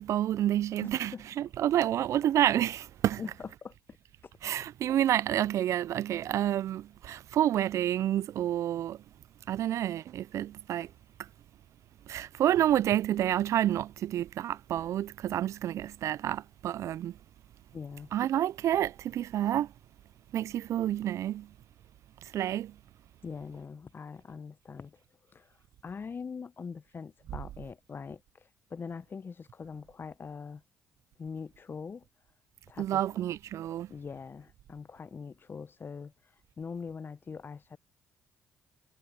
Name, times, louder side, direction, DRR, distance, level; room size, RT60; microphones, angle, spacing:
voice 1, 0.0-3.2 4.4-9.0 9.5-10.9 11.2-11.3 12.1-17.2 18.1-19.7 20.3-21.5 22.2-22.8 32.8-33.9, right 11 dB, 60° right, 0.5 m, -29 dB
voice 2, 0.8-1.2 3.2-3.7 4.2-4.3 17.7-18.1 23.2-25.0 25.3-25.5 25.8-30.6 31.2-32.0 32.7-33.0 33.9-36.1 36.6-37.8, left 5 dB, 40° left, 0.9 m, -42 dB
hypercardioid pair, 50°, 6 cm